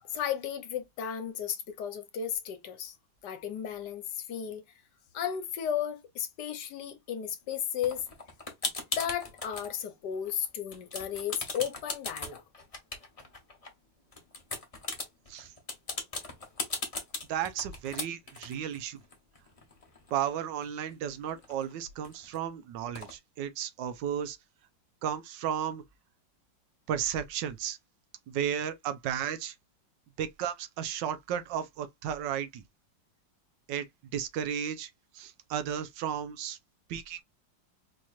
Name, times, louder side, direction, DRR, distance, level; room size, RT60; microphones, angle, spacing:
voice 1, 0.0-2.9 3.2-4.6 5.1-8.0 9.0-12.4, left 9 dB, 70° left, 1.3 m, -34 dB
sound 1, 7.8-9.7 10.1-10.5 10.7-13.7 14.1-20.3 20.6-20.7 20.9-22.4 22.9-23.1, left 3 dB, 30° left, 0.7 m, -38 dB
voice 2, 17.3-19.0 20.1-24.4 25.0-25.8 26.9-27.8 28.3-29.5 30.2-32.6 33.7-33.9 34.1-36.6 36.9-37.2, right 9 dB, 85° right, 1.3 m, -34 dB
4.5 x 2.9 x 2.3 m
omnidirectional pair, 2.0 m